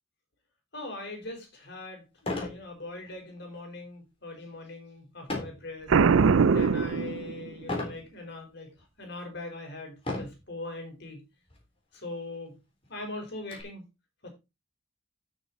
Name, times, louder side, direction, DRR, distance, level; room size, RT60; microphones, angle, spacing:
voice 1, 0.7-11.2 11.9-12.6 12.9-13.8 14.2-14.3, left 2 dB, 60° left, 4.7 m, -41 dB
sound 1, 1.2-1.3 2.2-2.6 3.1-3.4 5.3-5.7 6.3-6.7 7.7-8.0 8.8-8.9 10.0-10.5 11.5-11.6 11.9-12.0 12.5-13.6, left 2 dB, 30° left, 3.7 m, -35 dB
Boom, 5.9-7.7, right 5 dB, 85° right, 0.5 m, -22 dB
12.5 x 6.6 x 4.2 m
head